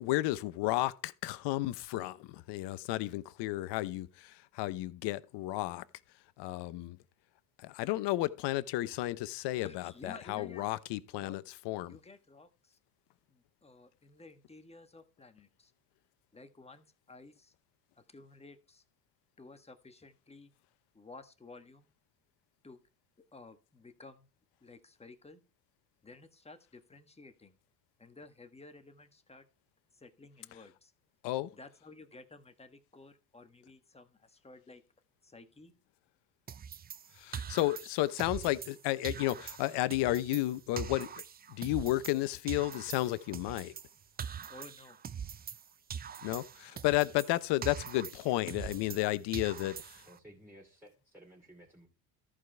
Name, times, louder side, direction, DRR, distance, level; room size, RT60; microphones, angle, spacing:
voice 1, 0.0-5.8 6.4-7.0 7.6-11.9 31.2-31.5 37.2-41.1 41.5-43.7 46.2-50.0, left 17 dB, 60° left, 0.9 m, -32 dB
voice 2, 9.5-10.7 11.2-11.4 11.8-12.8 13.3-15.7 16.3-17.5 18.0-18.8 19.4-20.5 20.9-21.9 22.6-22.8 23.2-24.3 24.6-25.4 26.0-27.6 28.0-29.4 29.9-30.9 31.5-34.8 35.2-35.7 44.5-45.0, left 3 dB, 15° left, 1.4 m, -53 dB
sound 1, 36.5-38.8 39.0-42.2 42.5-45.6 45.9-49.1 49.3-50.2, right 7 dB, 20° right, 0.5 m, -43 dB
voice 3, 50.0-51.9, equal, 5° right, 2.7 m, -56 dB
14.0 x 4.9 x 4.5 m
supercardioid pair, 85°, 48 cm